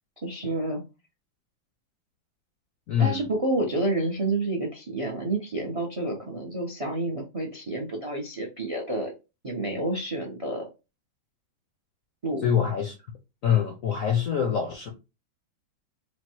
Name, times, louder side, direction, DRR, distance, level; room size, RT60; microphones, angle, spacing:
voice 1, 0.2-0.8 3.0-9.1 9.4-10.7 12.2-12.5, right 2 dB, 60° right, 0.3 m, -29 dB
voice 2, 2.9-3.2 12.4-13.0 13.4-14.9, left 8 dB, 70° left, 0.8 m, -24 dB
4.3 x 2.2 x 4.4 m
omnidirectional pair, 2.2 m